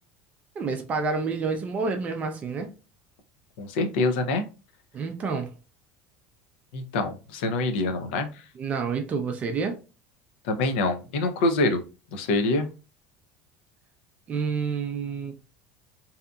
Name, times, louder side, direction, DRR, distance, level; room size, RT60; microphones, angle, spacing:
voice 1, 0.6-2.7 4.9-5.5 8.6-9.8 14.3-15.4, right 5 dB, 25° right, 0.4 m, -28 dB
voice 2, 3.6-4.4 6.7-8.4 10.4-11.8 12.1-12.7, left 2 dB, 85° left, 0.6 m, -25 dB
2.7 x 2.5 x 2.3 m
cardioid pair, 160°, 6 cm